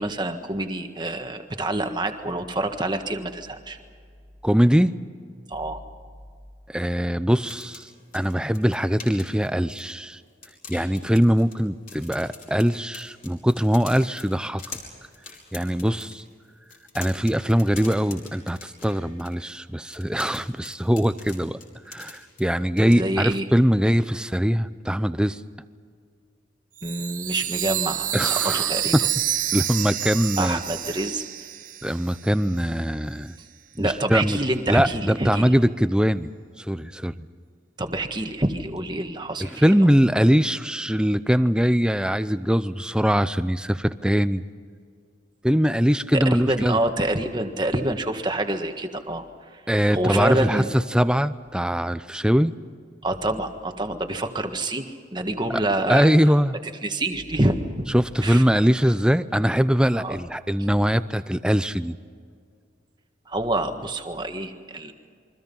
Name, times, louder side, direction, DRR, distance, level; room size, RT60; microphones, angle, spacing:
voice 1, 0.0-3.8 5.5-5.8 22.9-23.4 26.8-28.9 30.4-31.2 33.8-35.4 37.8-39.6 46.1-49.2 49.9-50.7 53.0-56.1 56.8-57.8 58.2-58.4 59.9-60.2 63.3-64.9, right 1 dB, 20° right, 6 dB, 1.6 m, -27 dB
voice 2, 4.4-5.0 6.7-10.2 10.7-14.6 15.5-16.2 16.9-21.6 21.9-25.4 28.1-29.1 29.5-30.6 31.8-33.3 33.8-34.4 34.7-37.3 39.4-44.4 45.4-46.8 49.7-52.5 55.5-55.6 55.9-56.6 57.9-62.0, equal, 5° right, 13 dB, 0.6 m, -22 dB
sound 1, 7.3-10.1 10.4-11.6 11.9-16.2 16.6-19.3 19.9-22.5 22.8-23.0, left 5 dB, 45° left, 5.0 m, -43 dB
Chime, 26.8-32.3, right 12 dB, 40° right, 0.8 m, -28 dB
29.0 x 23.5 x 5.5 m, 2.1 s
head